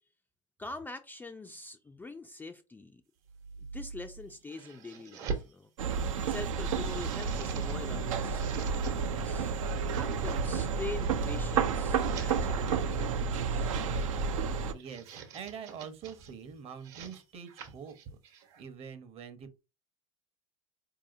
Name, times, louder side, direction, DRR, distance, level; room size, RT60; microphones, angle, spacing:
voice 1, 0.6-3.0 3.7-5.7 6.3-9.5 9.8-13.8, left 3 dB, 10° left, 0.4 m, -44 dB
sound 1, 3.3-5.5 6.0-7.8 8.1-8.9 9.5-10.7 11.3-12.3 13.4-13.8 14.6-16.3 16.7-18.6, right 5 dB, 55° right, 1.1 m, -44 dB
sound 2, 5.8-14.7, right 5 dB, 70° right, 0.5 m, -31 dB
voice 2, 14.3-18.0 18.6-19.6, right 7 dB, 35° right, 0.8 m, -45 dB
4.6 x 2.8 x 2.5 m
hypercardioid pair, 85°, 17 cm